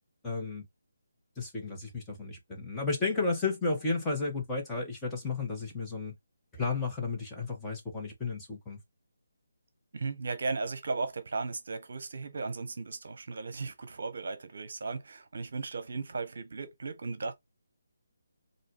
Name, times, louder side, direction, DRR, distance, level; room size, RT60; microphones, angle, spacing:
voice 1, 0.2-0.7 1.4-6.1 6.5-8.8, left 3 dB, 10° left, 1.4 m, -33 dB
voice 2, 9.9-17.3, right 4 dB, 60° right, 0.8 m, -36 dB
4.2 x 2.7 x 3.2 m
figure-of-eight pair, 150°, 0 cm